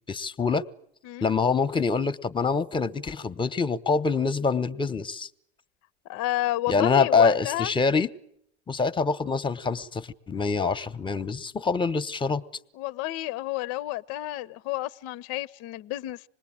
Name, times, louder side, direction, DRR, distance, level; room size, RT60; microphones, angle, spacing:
voice 1, 0.1-0.6 1.2-5.3 6.7-8.1 8.7-12.4, left 4 dB, 15° left, 1.3 m, -25 dB
voice 2, 6.1-7.7 12.7-16.2, left 16 dB, 45° left, 0.9 m, -31 dB
26.0 x 20.5 x 8.9 m
hypercardioid pair, 105°, 33 cm